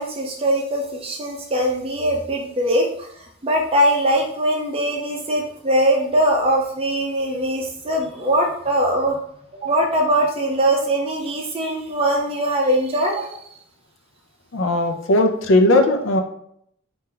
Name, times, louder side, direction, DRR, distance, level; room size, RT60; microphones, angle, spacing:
voice 1, 0.0-9.2 9.6-13.5, right 1 dB, 30° right, 0 dB, 0.6 m, -21 dB
voice 2, 14.5-16.2, left 1 dB, 75° left, 4 dB, 0.6 m, -17 dB
4.3 x 2.5 x 3.8 m, 0.69 s
head